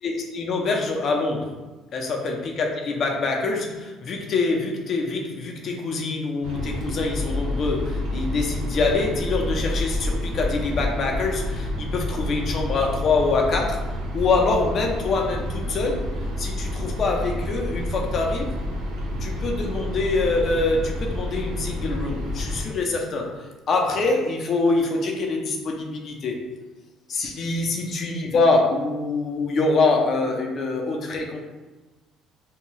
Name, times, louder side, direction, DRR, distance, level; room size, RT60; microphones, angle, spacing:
voice 1, 0.0-1.5 1.9-13.8 14.1-16.0 16.4-18.6 19.2-26.4 27.1-31.4, left 3 dB, 40° left, 1 dB, 0.5 m, -25 dB
sound 1, 6.4-22.6, left 1 dB, 60° right, 0.5 m, -29 dB
2.6 x 2.2 x 3.1 m, 1.2 s
cardioid pair, 155°, 0 cm